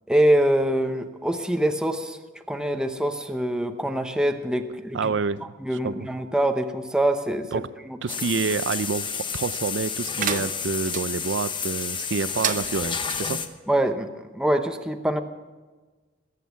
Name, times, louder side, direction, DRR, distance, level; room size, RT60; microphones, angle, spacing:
voice 1, 0.1-2.2 2.5-5.1 5.6-8.0 13.7-15.2, right 1 dB, 5° right, 6 dB, 0.8 m, -24 dB
voice 2, 4.9-5.4 5.8-5.9 7.5-7.7 8.0-13.4, right 4 dB, 75° right, 16 dB, 0.5 m, -28 dB
sound 1, 8.1-13.5, left 6 dB, 25° left, 0.9 m, -30 dB
sound 2, 10.2-11.0 12.3-13.2, right 8 dB, 45° right, 0.8 m, -31 dB
21.0 x 8.5 x 7.0 m, 1.3 s
head